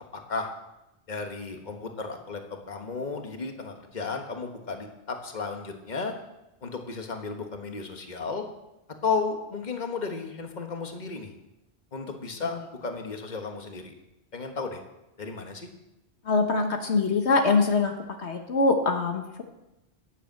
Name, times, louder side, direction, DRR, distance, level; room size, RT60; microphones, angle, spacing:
voice 1, 1.1-6.1 6.6-8.4 9.0-11.3 11.9-13.9 14.3-14.8 15.2-15.7, left 4 dB, 40° left, 4 dB, 1.6 m, -33 dB
voice 2, 16.2-17.9 18.2-19.4, left 3 dB, 70° left, 4 dB, 1.5 m, -23 dB
11.0 x 10.5 x 7.7 m, 0.92 s
omnidirectional pair, 1.2 m